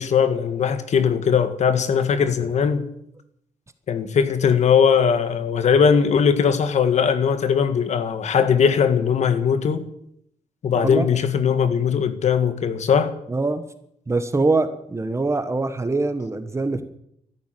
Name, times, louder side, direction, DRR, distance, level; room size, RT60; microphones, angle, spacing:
voice 1, 0.0-2.9 3.9-9.9 10.6-13.1, left 7 dB, 60° left, 1.8 m, -19 dB
voice 2, 10.7-11.0 13.3-13.6 14.1-16.8, right 3 dB, 20° right, 1.4 m, -23 dB
13.5 x 11.5 x 9.3 m
cardioid pair, 105°, 13 cm